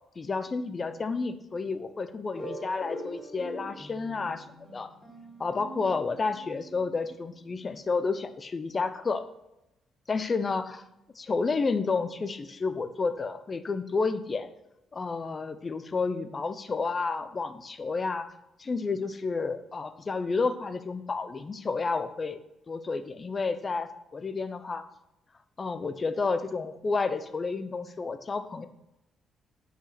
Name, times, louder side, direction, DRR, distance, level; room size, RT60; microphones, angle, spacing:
voice 1, 0.2-4.4 4.7-4.9 5.4-9.2 10.1-10.8 11.2-14.5 14.9-18.3 18.6-22.4 22.7-24.8 25.6-28.7, left 4 dB, 35° left, 11 dB, 0.9 m, -30 dB
sound 1, 2.3-6.9, right 1 dB, 15° left, 3.8 m, -43 dB
9.0 x 5.5 x 5.9 m, 0.90 s
cardioid pair, 90°, 0 cm